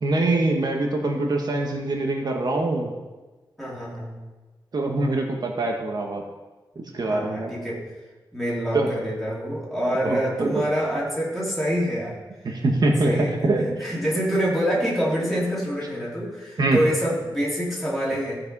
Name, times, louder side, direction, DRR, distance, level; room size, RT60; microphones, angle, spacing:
voice 1, 0.0-2.9 4.7-6.2 6.8-7.5 8.7-8.9 10.0-10.6 12.4-13.7 16.6-16.8, right 2 dB, 50° right, 1 dB, 1.3 m, -24 dB
voice 2, 3.6-4.1 7.1-7.8 8.3-12.2 13.0-18.4, equal, ahead, -7 dB, 3.2 m, -26 dB
15.0 x 5.0 x 5.4 m, 1.2 s
wide cardioid pair, 140°, 9 cm